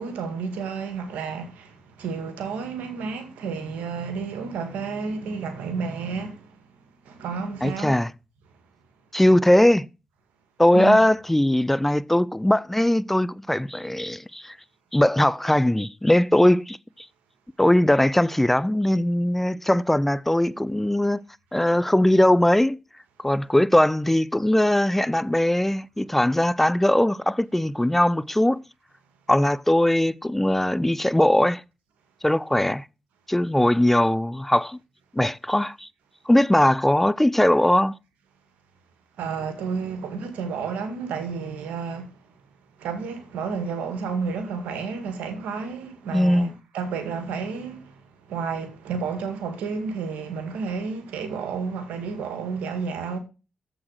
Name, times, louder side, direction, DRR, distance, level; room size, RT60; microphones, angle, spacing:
voice 1, 0.0-6.5 7.1-8.0 10.7-11.0 39.2-42.1 42.8-48.0 48.3-53.2, right 5 dB, 90° right, 1.9 m, -31 dB
voice 2, 7.6-8.1 9.1-9.8 10.6-14.6 14.9-16.8 17.6-21.2 21.5-22.8 23.2-28.6 29.3-31.6 32.2-32.8 33.3-34.8 35.1-35.9 36.3-37.9 46.1-46.5, left 1 dB, 10° left, 0.5 m, -20 dB
7.6 x 6.1 x 6.4 m
supercardioid pair, 55°, 2 cm